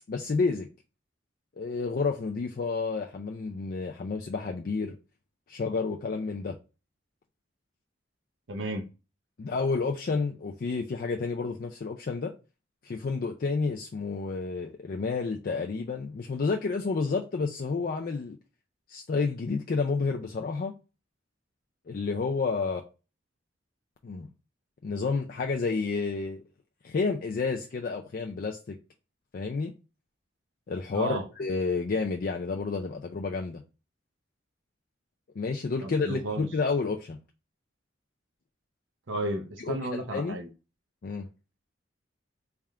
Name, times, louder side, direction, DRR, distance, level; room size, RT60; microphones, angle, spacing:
voice 1, 0.1-0.7 1.6-5.0 5.5-6.6 9.4-12.3 12.8-18.4 18.9-20.7 21.9-22.8 24.0-24.3 24.8-26.4 26.8-28.8 29.3-29.7 30.7-33.6 35.4-37.2 39.6-40.4 41.0-41.3, left 4 dB, 50° left, 0.4 m, -30 dB
voice 2, 8.5-8.9 30.9-31.2 35.8-36.5 39.1-40.5, right 1 dB, 80° right, 0.7 m, -33 dB
3.5 x 2.4 x 4.3 m
head